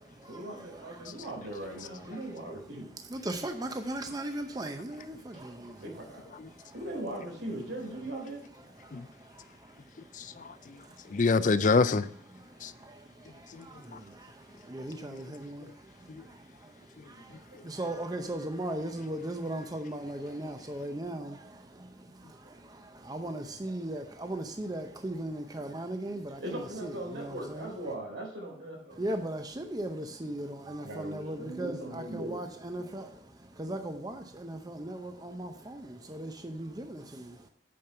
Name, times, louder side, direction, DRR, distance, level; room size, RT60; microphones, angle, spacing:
voice 1, 0.3-2.9 5.1-5.4 5.8-6.2 6.7-8.4 17.5-17.6 22.4-22.5 26.4-29.2 30.8-32.4, right 1 dB, 85° right, 4.0 m, -39 dB
voice 2, 3.1-5.2 5.4-5.5 14.7-15.6 17.7-21.3 23.1-27.7 29.0-33.0 33.6-35.8 36.1-37.0, right 1 dB, 20° right, 0.6 m, -37 dB
voice 3, 10.1-10.8 11.1-12.1 12.6-12.7 13.5-13.6 16.1-16.2, left 4 dB, 40° left, 0.4 m, -26 dB
8.6 x 5.4 x 5.6 m
head